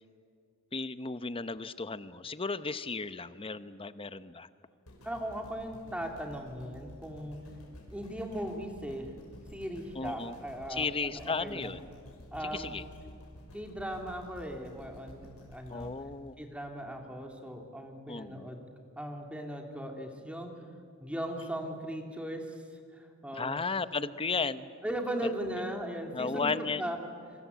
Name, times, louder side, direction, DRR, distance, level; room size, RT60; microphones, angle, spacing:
voice 1, 0.7-4.5 9.9-10.4 10.7-11.9 12.4-12.8 15.7-16.4 18.1-18.5 23.3-24.7 26.1-26.8, left 4 dB, 25° left, 13 dB, 0.8 m, -34 dB
sound 1, 4.9-17.1 17.6-17.7, equal, 90° left, 6.0 m, -52 dB
voice 2, 5.0-7.4 7.9-9.1 9.5-11.7 12.3-12.7 13.5-15.9 16.4-18.6 19.0-20.5 21.0-22.6 22.9-23.6 24.8-26.5 26.8-27.0, equal, 5° right, 3 dB, 2.9 m, -38 dB
26.5 x 24.5 x 8.2 m, 2.2 s
head